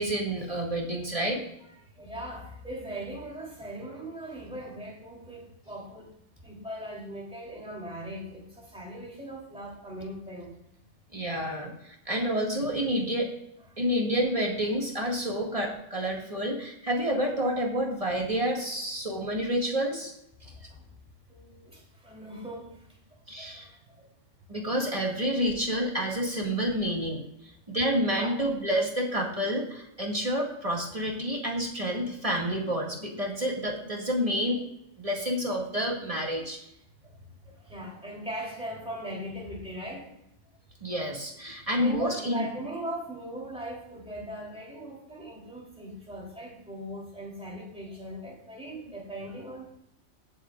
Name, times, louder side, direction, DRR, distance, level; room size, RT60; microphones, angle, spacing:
voice 1, 0.0-1.4 11.1-13.3 13.8-20.1 23.3-23.7 24.5-34.6 35.0-36.6 40.8-42.5, equal, 30° right, -1 dB, 2.1 m, -29 dB
voice 2, 2.0-6.1 6.4-10.5 20.4-20.8 21.3-22.8 23.4-23.6 24.0-24.1 28.2-28.3 37.0-37.2 37.4-40.1 41.8-49.7, right 1 dB, 5° right, -3 dB, 3.3 m, -39 dB
20.0 x 7.6 x 2.5 m, 0.80 s
omnidirectional pair, 1.3 m